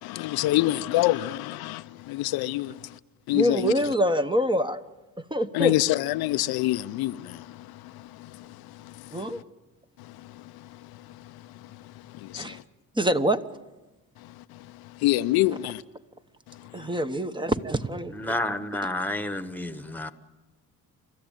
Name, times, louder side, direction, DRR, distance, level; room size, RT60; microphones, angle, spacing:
voice 1, 0.0-1.8 2.1-2.7 3.3-3.6 5.5-5.9 6.2-7.4 12.3-12.4 15.0-15.8, left 16 dB, 90° left, 0.7 m, -25 dB
voice 2, 3.3-4.8 5.3-5.8 9.1-9.4 12.3-12.6 12.9-13.4 16.7-18.3, equal, 15° right, 1.1 m, -25 dB
voice 3, 18.1-20.1, left 1 dB, 5° left, 1.4 m, -30 dB
29.5 x 13.5 x 9.0 m
cardioid pair, 85°, 36 cm